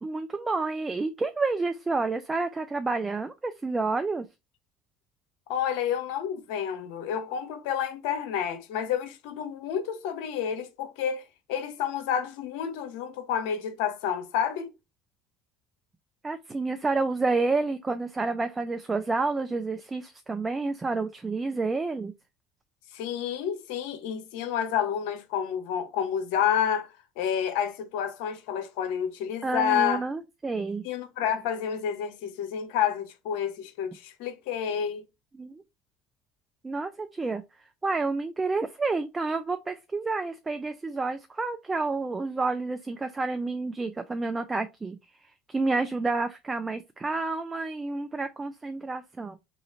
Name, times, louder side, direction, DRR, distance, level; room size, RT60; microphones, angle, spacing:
voice 1, 0.0-4.3 16.2-22.1 29.4-30.9 35.4-35.6 36.6-37.4 37.8-49.4, right 3 dB, 20° right, 0.5 m, -29 dB
voice 2, 5.5-11.2 11.5-14.7 22.9-26.9 27.2-30.0 30.8-35.0, left 8 dB, 80° left, 0.8 m, -29 dB
3.1 x 2.4 x 4.2 m
supercardioid pair, 85°, 0 cm